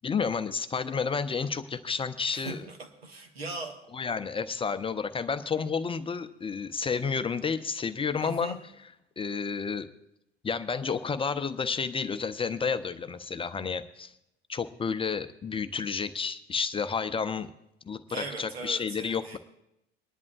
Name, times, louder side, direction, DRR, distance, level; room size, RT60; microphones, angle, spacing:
voice 1, 0.0-2.6 3.9-8.6 9.2-9.9 10.4-14.1 14.5-17.5 17.8-19.4, left 5 dB, 20° left, 10 dB, 0.6 m, -31 dB
voice 2, 2.3-3.8 8.2-8.6 18.1-19.4, right 2 dB, 80° right, 4 dB, 1.4 m, -39 dB
25.0 x 10.5 x 2.4 m, 0.84 s
figure-of-eight pair, 65°, 30 cm